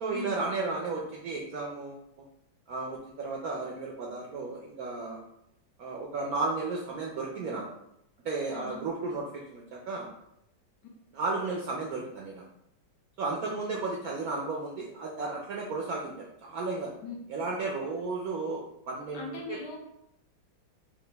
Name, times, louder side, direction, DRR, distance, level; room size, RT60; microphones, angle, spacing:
voice 1, 0.0-2.0 2.7-5.2 5.8-7.7 8.2-10.1 11.1-12.4 13.2-16.9 17.3-19.6, right 3 dB, 70° right, -2 dB, 0.8 m, -34 dB
voice 2, 8.5-8.9 13.5-13.8 17.0-17.1 19.1-19.8, left 4 dB, 65° left, -2 dB, 1.4 m, -39 dB
4.9 x 2.3 x 3.3 m, 0.79 s
omnidirectional pair, 2.1 m